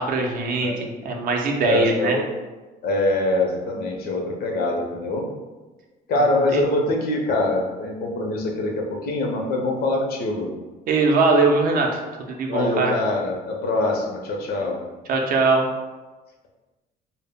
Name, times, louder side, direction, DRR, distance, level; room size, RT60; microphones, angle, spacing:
voice 1, 0.0-2.2 6.5-6.6 10.9-12.0 12.3-13.0 15.1-15.7, right 3 dB, 60° right, 2 dB, 0.5 m, -21 dB
voice 2, 1.6-2.2 2.8-5.2 6.1-10.5 12.5-14.8, left 2 dB, 65° left, 0 dB, 0.6 m, -24 dB
2.0 x 2.0 x 3.5 m, 1.2 s
cardioid pair, 110°, 17 cm